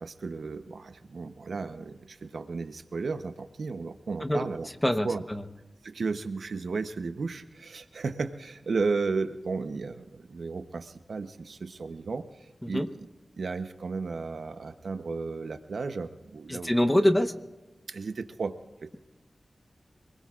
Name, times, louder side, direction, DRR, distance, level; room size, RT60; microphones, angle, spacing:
voice 1, 0.0-4.7 5.0-5.2 5.8-13.1 13.4-16.7 17.9-18.5 18.8-19.0, right 4 dB, 80° right, 9 dB, 0.9 m, -34 dB
voice 2, 4.8-5.4 12.6-12.9 16.5-17.3, left 1 dB, 10° left, 8 dB, 1.0 m, -24 dB
27.0 x 20.5 x 2.5 m, 1.1 s
wide cardioid pair, 70°, 0 cm